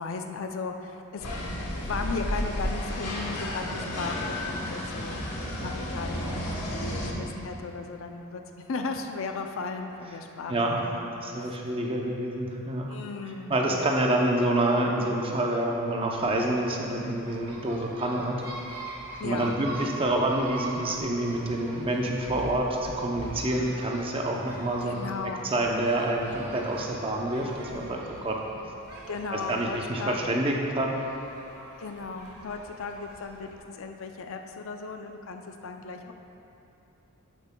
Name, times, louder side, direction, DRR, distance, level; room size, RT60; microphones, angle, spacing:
voice 1, 0.0-5.2 5.6-6.5 6.9-11.2 12.9-13.9 19.2-19.5 24.8-25.5 29.1-30.2 31.8-36.1, left 4 dB, 60° left, 4 dB, 0.4 m, -36 dB
sound 1, 1.2-7.1, left 1 dB, 85° left, 1.2 m, -32 dB
voice 2, 10.5-10.8 11.2-12.9 13.5-18.4 19.2-25.1 25.4-28.4 29.3-31.0, right 1 dB, 25° right, 0 dB, 0.6 m, -27 dB
sound 2, 16.1-33.6, right 2 dB, 90° right, 1.4 m, -44 dB
11.5 x 7.0 x 2.2 m, 2.9 s
head